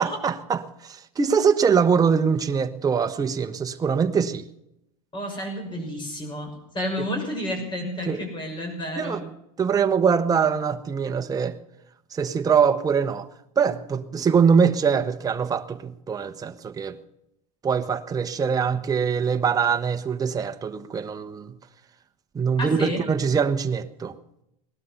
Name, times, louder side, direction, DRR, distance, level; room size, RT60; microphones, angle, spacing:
voice 1, 0.0-4.4 8.1-8.2 9.0-9.3 9.6-11.6 12.1-13.3 13.6-17.0 17.6-21.5 22.3-24.1, right 6 dB, 20° right, 1.0 m, -23 dB
voice 2, 5.1-6.5 6.7-9.2 22.6-23.0, left 1 dB, 25° left, 6.4 m, -30 dB
18.5 x 12.5 x 5.7 m
supercardioid pair, 110°, 18 cm